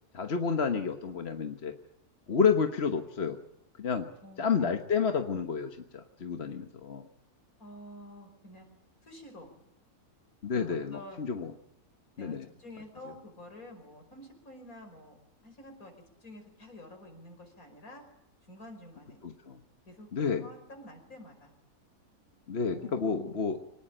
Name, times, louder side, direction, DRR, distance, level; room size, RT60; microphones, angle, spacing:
voice 1, 0.1-1.7 2.3-3.4 3.8-4.1 4.4-7.0 10.4-11.5 12.2-12.5 19.2-19.6 20.1-20.5 22.5-23.6, left 6 dB, 45° left, 5 dB, 1.4 m, -30 dB
voice 2, 4.2-4.7 7.6-8.7 9.0-9.5 10.5-11.2 12.2-15.9 16.2-18.0 18.4-19.2 19.9-21.5 22.7-23.4, left 1 dB, 65° left, 4 dB, 5.9 m, -49 dB
25.5 x 19.5 x 9.0 m, 0.84 s
omnidirectional pair, 1.6 m